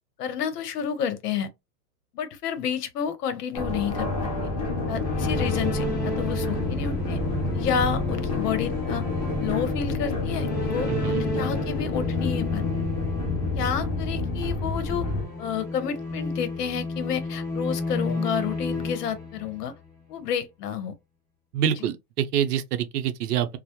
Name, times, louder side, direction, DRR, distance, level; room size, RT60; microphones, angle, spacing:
voice 1, 0.2-1.5 2.1-4.5 4.9-7.2 7.5-9.0 9.4-12.6 13.6-15.1 15.4-19.7 20.1-20.9, left 7 dB, 75° left, 0.8 m, -30 dB
sound 1, 3.5-15.3, left 3 dB, 25° left, 0.4 m, -29 dB
sound 2, 4.7-19.9, left 2 dB, 10° left, 1.0 m, -32 dB
voice 2, 10.9-11.2 21.5-23.6, right 9 dB, 70° right, 0.6 m, -26 dB
2.2 x 2.0 x 2.8 m
supercardioid pair, 170°, 48 cm